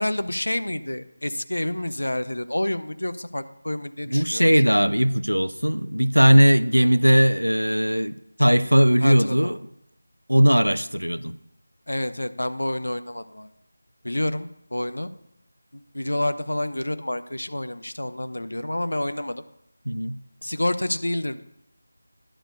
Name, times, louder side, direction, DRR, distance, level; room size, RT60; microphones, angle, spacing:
voice 1, 0.0-4.7 9.0-9.6 11.9-13.5 14.0-15.1 15.7-19.4 20.4-21.4, left 1 dB, 70° left, 11 dB, 0.6 m, -28 dB
voice 2, 4.1-9.6 10.3-11.3 19.9-20.2, equal, 90° right, 16 dB, 0.5 m, -19 dB
10.0 x 4.4 x 6.7 m, 0.79 s
figure-of-eight pair, 165°, 0 cm